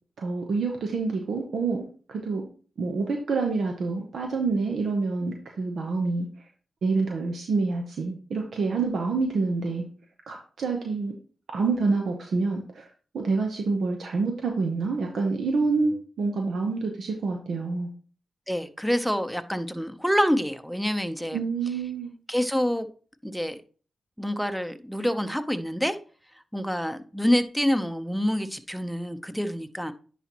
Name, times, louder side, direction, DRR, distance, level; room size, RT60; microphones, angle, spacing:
voice 1, 0.2-2.5 2.8-6.3 6.8-9.8 10.3-11.1 11.5-12.9 13.1-17.9 21.3-22.1, right 4 dB, 75° right, 2 dB, 0.9 m, -27 dB
voice 2, 18.5-21.4 22.3-22.9 23.2-23.6 24.2-26.0 26.5-29.9, equal, ahead, 10 dB, 0.8 m, -27 dB
9.9 x 4.1 x 3.0 m, 0.40 s
supercardioid pair, 40°, 0 cm